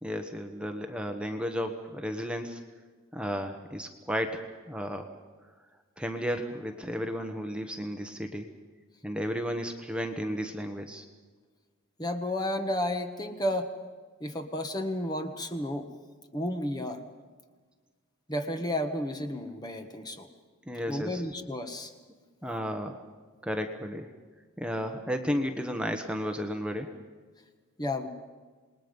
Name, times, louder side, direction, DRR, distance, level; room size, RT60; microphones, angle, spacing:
voice 1, 0.0-2.6 3.1-5.1 6.0-8.5 9.0-11.1 20.7-21.2 22.4-23.0 23.4-24.1 24.6-26.9, equal, 5° right, 4 dB, 1.2 m, -33 dB
voice 2, 12.0-13.7 14.2-15.9 16.3-17.0 18.3-20.3 20.9-21.9 27.8-28.1, left 1 dB, 20° left, 6 dB, 1.4 m, -32 dB
28.0 x 20.5 x 5.4 m, 1.4 s
head